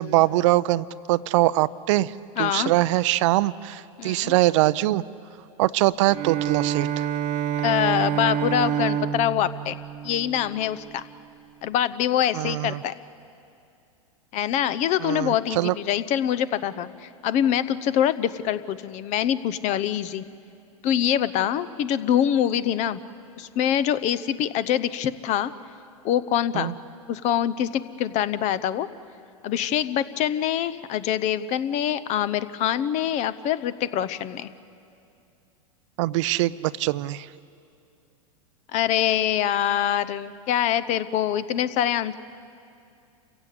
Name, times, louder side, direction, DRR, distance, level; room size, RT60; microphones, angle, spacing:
voice 1, 0.0-2.1 2.4-5.0 5.6-7.1 12.3-12.8 15.0-15.7 26.5-26.7 36.0-37.3, right 17 dB, 60° right, 17 dB, 0.5 m, -23 dB
voice 2, 2.4-2.7 4.0-4.3 7.6-9.8 10.0-11.0 11.6-12.9 14.3-20.2 20.8-23.0 23.4-25.5 26.0-26.7 27.1-28.9 29.4-34.5 38.7-42.1, left 10 dB, 40° left, 15 dB, 0.8 m, -24 dB
Bowed string instrument, 6.0-11.0, right 9 dB, 40° right, 1.0 m, -28 dB
28.5 x 16.0 x 8.4 m, 2.6 s
hypercardioid pair, 110°, 18 cm